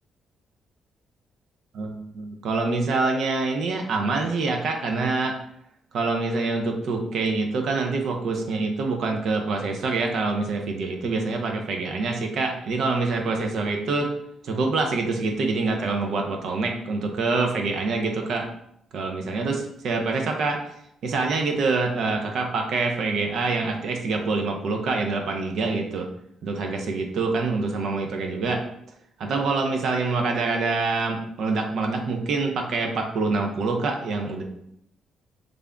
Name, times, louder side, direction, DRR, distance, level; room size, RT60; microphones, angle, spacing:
voice 1, 1.7-5.4 5.9-14.1 14.4-18.5 18.9-20.6 21.0-26.1 26.4-28.6 29.2-34.4, right 3 dB, 70° right, 3 dB, 0.6 m, -25 dB
3.4 x 2.5 x 3.5 m, 0.73 s
cardioid pair, 90°, 0 cm